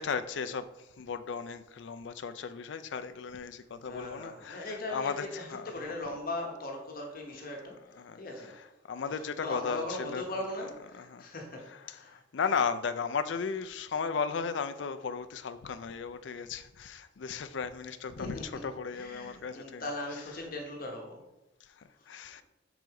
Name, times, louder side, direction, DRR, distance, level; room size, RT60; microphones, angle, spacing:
voice 1, 0.0-6.0 7.3-11.3 11.5-20.5 21.6-22.4, left 5 dB, 65° left, 11 dB, 0.4 m, -36 dB
voice 2, 3.9-8.5 9.1-12.2 18.2-18.6 18.9-21.2 22.0-22.1, left 2 dB, 50° left, 1 dB, 1.0 m, -39 dB
6.3 x 3.9 x 4.7 m, 0.99 s
head